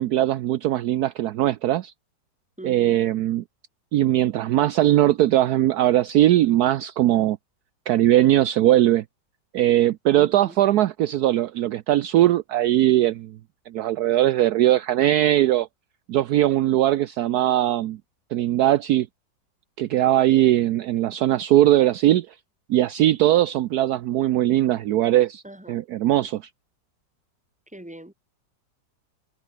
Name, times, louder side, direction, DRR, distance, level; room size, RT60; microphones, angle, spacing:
voice 1, 0.0-1.9 2.6-3.4 3.9-7.4 7.9-9.0 9.5-13.4 13.7-15.7 16.1-18.0 18.3-19.1 19.8-22.3 22.7-25.4 25.7-26.4, right 13 dB, 70° right, 1.1 m, -20 dB
voice 2, 2.6-3.0 10.2-10.6 25.4-25.8 27.7-28.1, right 1 dB, 5° right, 3.0 m, -41 dB
omnidirectional pair, 1.9 m